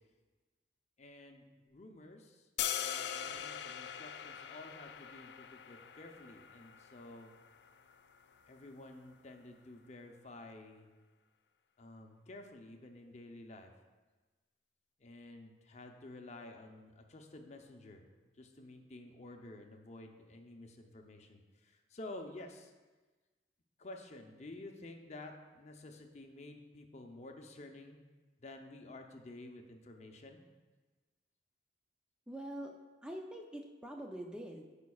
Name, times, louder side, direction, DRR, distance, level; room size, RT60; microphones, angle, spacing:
voice 1, 1.0-2.5 2.8-7.3 8.5-10.9 11.8-13.7 15.0-18.0 18.4-22.7 23.8-28.0 28.4-30.4, left 2 dB, 40° left, 4 dB, 0.7 m, -51 dB
sound 1, 2.6-8.7, left 9 dB, 75° left, 0.4 m, -42 dB
voice 2, 32.3-32.7 33.0-34.6, right 1 dB, 5° right, 1 dB, 0.4 m, -44 dB
13.0 x 5.2 x 2.3 m, 1.3 s
head